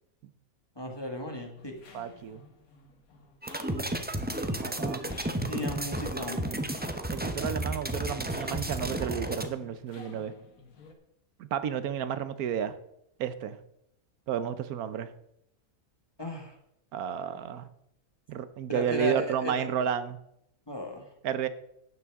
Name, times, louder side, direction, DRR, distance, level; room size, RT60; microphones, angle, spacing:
voice 1, 0.7-1.8 5.0-5.1 5.4-6.4 16.2-16.5 18.7-19.7 20.7-21.1, left 1 dB, 15° left, 2 dB, 1.6 m, -35 dB
sound 1, 1.6-10.9, left 4 dB, 75° left, 1.8 m, -53 dB
voice 2, 1.9-2.5 4.6-5.0 7.1-10.3 11.5-12.7 13.2-13.6 14.3-15.1 16.9-17.7 18.3-20.2 21.2-21.5, right 8 dB, 85° right, 13 dB, 1.2 m, -32 dB
sound 2, 3.4-9.5, right 1 dB, 15° right, 0.4 m, -32 dB
12.0 x 9.3 x 3.6 m, 0.78 s
omnidirectional pair, 1.5 m